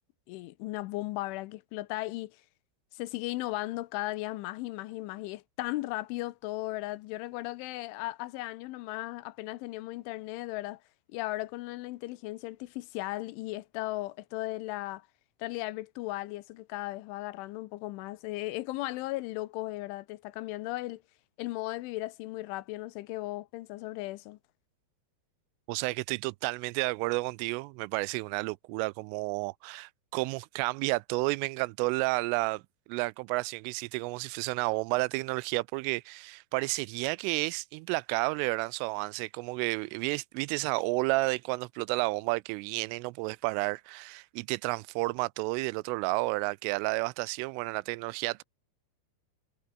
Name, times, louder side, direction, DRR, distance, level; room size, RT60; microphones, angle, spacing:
voice 1, 0.3-2.4 2.9-10.8 11.1-15.1 15.4-21.0 21.4-24.4, left 18 dB, 85° left, 3.2 m, -36 dB
voice 2, 25.7-32.6 32.9-48.4, right 25 dB, 85° right, 3.1 m, -31 dB
omnidirectional pair, 5.7 m